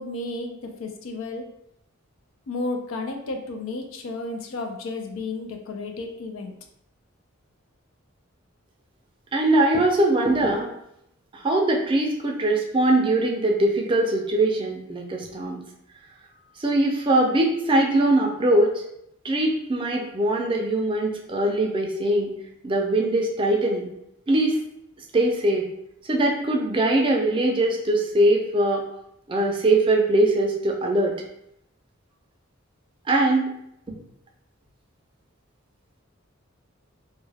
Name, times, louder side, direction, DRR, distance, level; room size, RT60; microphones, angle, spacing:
voice 1, 0.0-1.5 2.5-6.5, left 2 dB, 75° left, 4 dB, 0.4 m, -32 dB
voice 2, 9.3-10.7 11.3-15.6 16.6-18.8 19.2-22.3 22.6-23.9 24.3-24.6 25.1-25.7 26.1-28.8 29.3-31.2 33.1-33.5 33.9-34.0, right 1 dB, 25° right, 0 dB, 0.4 m, -21 dB
2.2 x 2.2 x 3.3 m, 0.77 s
head